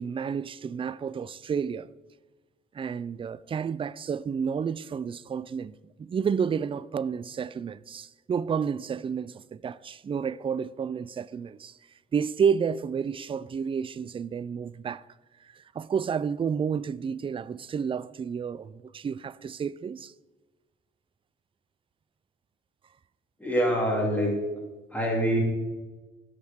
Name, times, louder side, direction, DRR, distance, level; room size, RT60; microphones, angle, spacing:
voice 1, 0.0-1.9 2.7-11.8 12.1-15.1 15.4-20.1, right 6 dB, 25° right, 0.3 m, -30 dB
voice 2, 23.4-24.3 24.9-25.4, equal, 10° left, 2.7 m, -25 dB
16.0 x 6.6 x 3.6 m
cardioid pair, 90°, 21 cm